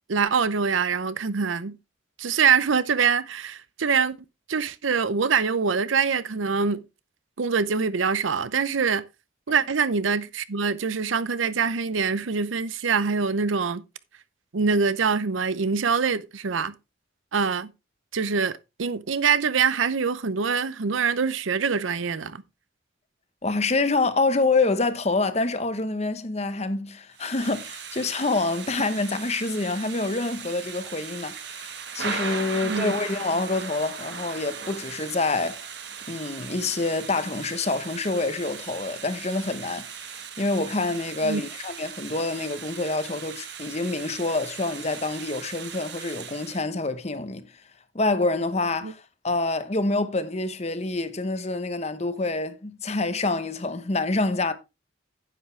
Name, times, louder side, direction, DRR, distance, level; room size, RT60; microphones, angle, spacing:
voice 1, 0.1-1.8 2.2-4.2 4.5-6.8 7.4-9.0 9.5-13.8 14.5-16.7 17.3-17.7 18.1-22.4 32.6-32.9 41.2-41.4 48.8-48.9, right 5 dB, 80° right, 0.7 m, -24 dB
voice 2, 23.4-35.6 36.1-39.9 40.4-47.5 47.9-54.5, left 3 dB, 35° left, 0.9 m, -27 dB
Thunder / Rain, 27.1-46.6, right 6 dB, 55° right, 1.5 m, -38 dB
10.0 x 8.1 x 3.3 m
head